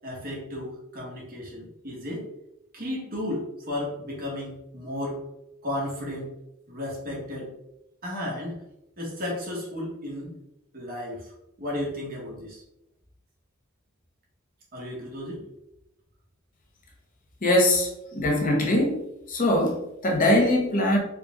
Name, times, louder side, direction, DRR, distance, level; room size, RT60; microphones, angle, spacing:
voice 1, 0.0-2.2 2.7-5.2 5.6-6.3 6.7-7.5 8.0-8.6 9.0-10.3 10.7-11.3 11.6-12.6 14.7-15.4, left 1 dB, 45° right, -4 dB, 1.5 m, -33 dB
voice 2, 17.4-19.0 19.3-21.0, left 1 dB, 40° left, -1 dB, 0.9 m, -22 dB
4.6 x 2.5 x 3.5 m, 0.87 s
head